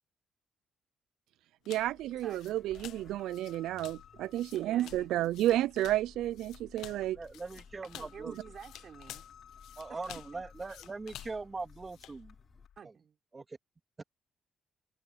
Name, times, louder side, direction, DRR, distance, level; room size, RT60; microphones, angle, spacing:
sound 1, 1.6-12.2, left 13 dB, 85° left, 0.6 m, -51 dB
voice 1, 1.7-7.2, right 14 dB, 90° right, 0.3 m, -31 dB
sound 2, 1.8-12.8, left 9 dB, 70° left, 3.1 m, -60 dB
sound 3, 1.9-12.7, left 4 dB, 35° left, 6.5 m, -59 dB
voice 2, 4.4-5.1 7.9-9.2 9.9-10.0 10.3-10.4 12.8-13.2, right 7 dB, 55° right, 4.3 m, -49 dB
voice 3, 6.9-8.3 9.8-12.3 13.3-13.6 14.0-14.1, right 3 dB, 25° right, 2.3 m, -41 dB
cardioid pair, 90°, 0 cm